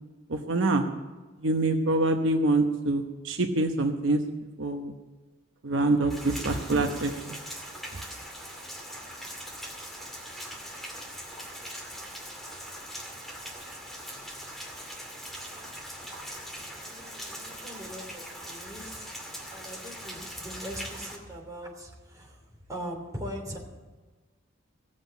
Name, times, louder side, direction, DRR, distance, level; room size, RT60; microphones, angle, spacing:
voice 1, 0.3-0.8 1.4-4.2 4.6-4.9 5.6-7.1, right 2 dB, 70° right, 4 dB, 0.9 m, -25 dB
Rain, 6.1-21.2, equal, ahead, 2.3 m, -41 dB
voice 2, 16.8-19.1 19.5-22.4 22.7-23.6, equal, 20° right, 0 dB, 3.1 m, -40 dB
16.5 x 7.6 x 8.2 m, 1.3 s
head